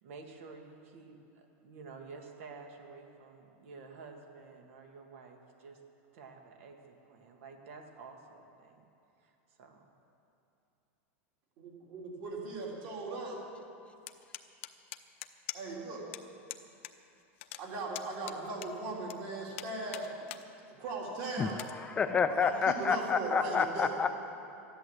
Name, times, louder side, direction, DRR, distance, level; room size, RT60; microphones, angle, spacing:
voice 1, 0.0-5.8 6.1-8.8 9.2-9.9, right 4 dB, 75° right, 3 dB, 1.9 m, -51 dB
voice 2, 11.6-13.4 15.5-16.1 17.6-20.1 20.8-21.6 22.3-23.9, right 3 dB, 50° right, -2 dB, 3.5 m, -38 dB
sound 1, 14.1-15.8 16.1-16.2 16.5-16.9 17.2-19.2 19.6-20.4 20.9-21.0 21.5-21.7, left 15 dB, 65° left, 0.8 m, -43 dB
voice 3, 21.4-24.1, left 6 dB, 15° left, 8 dB, 0.4 m, -29 dB
14.0 x 11.0 x 7.9 m, 2.8 s
supercardioid pair, 155°, 7 cm